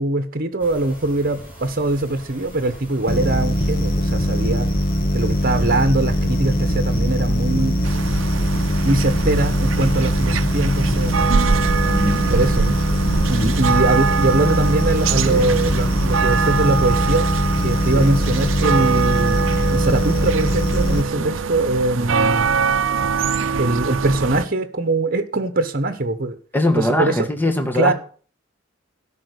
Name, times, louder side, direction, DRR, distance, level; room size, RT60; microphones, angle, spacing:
voice 1, 0.0-4.7 5.1-7.9 8.8-11.1 12.3-12.8 13.3-17.3 17.6-19.4 19.7-22.5 23.6-26.4 26.8-27.3 27.7-27.9, right 2 dB, 50° right, 1.2 m, -22 dB
sound 1, 0.6-19.6, right 1 dB, 10° right, 7.3 m, -40 dB
sound 2, 3.1-21.0, equal, 50° left, 1.4 m, -21 dB
sound 3, 7.8-24.4, right 6 dB, 75° right, 0.6 m, -23 dB
voice 2, 11.9-12.3 13.4-13.5 15.2-15.5 17.9-18.1 21.1-21.3 26.5-27.9, left 1 dB, 10° left, 1.5 m, -22 dB
12.5 x 5.7 x 8.0 m
head